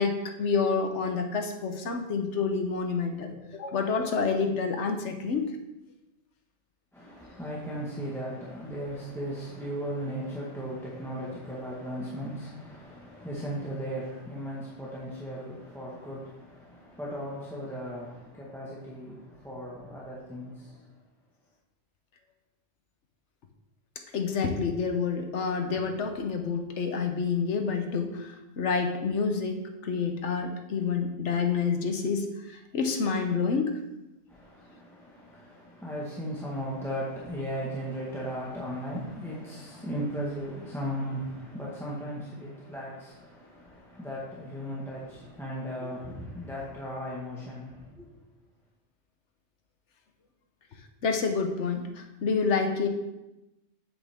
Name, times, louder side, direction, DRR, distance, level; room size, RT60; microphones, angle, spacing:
voice 1, 0.0-5.4 24.1-33.7 51.0-52.9, left 5 dB, 80° left, 5 dB, 1.2 m, -28 dB
voice 2, 6.9-20.8 34.3-48.2, equal, ahead, -7 dB, 1.4 m, -37 dB
8.2 x 7.5 x 3.6 m, 0.98 s
omnidirectional pair, 1.2 m